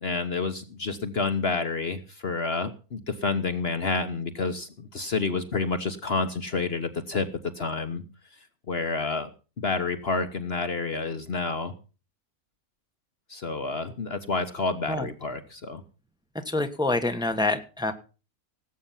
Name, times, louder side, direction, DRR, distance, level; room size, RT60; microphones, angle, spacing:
voice 1, 0.0-7.3 7.6-8.0 8.7-9.3 9.6-11.7 13.3-15.8, left 4 dB, 45° left, 9 dB, 1.3 m, -29 dB
voice 2, 16.4-17.9, left 2 dB, 5° right, 7 dB, 1.3 m, -26 dB
18.5 x 8.6 x 5.9 m, 0.35 s
omnidirectional pair, 1.6 m